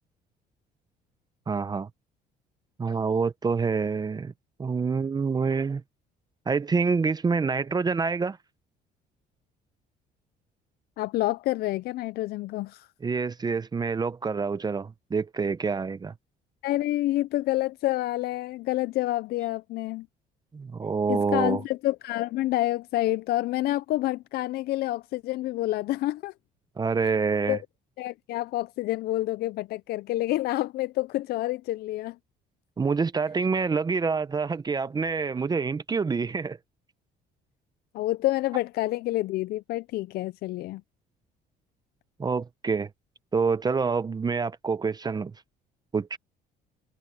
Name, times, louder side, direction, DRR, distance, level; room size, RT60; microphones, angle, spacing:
voice 1, 1.5-1.9 2.8-4.3 4.6-5.8 6.5-8.4 13.0-16.1 20.5-21.6 26.8-27.6 32.8-36.6 42.2-42.9 43.3-45.3 45.9-46.2, right 5 dB, 25° right, 0.8 m, -27 dB
voice 2, 11.0-12.9 16.6-20.1 21.1-26.3 27.5-27.6 28.0-32.2 37.9-40.8, left 16 dB, 70° left, 0.4 m, -28 dB
cardioid pair, 110°, 17 cm